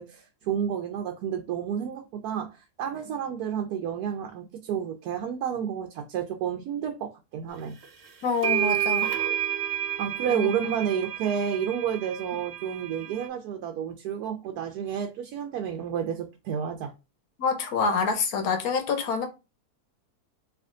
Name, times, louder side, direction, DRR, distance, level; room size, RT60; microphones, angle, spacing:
voice 1, 0.0-7.8 10.0-16.9, right 8 dB, 80° right, 1.1 m, -30 dB
sound 1, 7.8-7.9 8.4-13.3, right 11 dB, 50° right, 1.0 m, -30 dB
voice 2, 8.2-9.1 10.3-10.5 17.4-19.3, left 5 dB, 75° left, 1.3 m, -26 dB
3.4 x 2.7 x 3.7 m
omnidirectional pair, 1.6 m